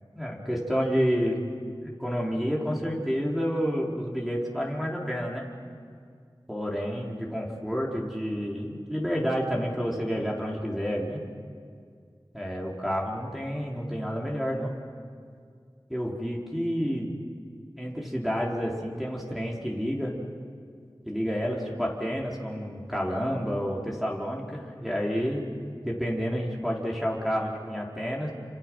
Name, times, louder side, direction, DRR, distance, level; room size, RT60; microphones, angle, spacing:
voice 1, 0.1-1.5 1.8-5.4 6.5-11.2 12.3-14.7 15.9-17.1 17.8-20.1 21.1-25.4 25.8-28.3, equal, ahead, -3 dB, 4.3 m, -29 dB
28.5 x 26.5 x 6.4 m, 2.2 s
wide cardioid pair, 50°, 9 cm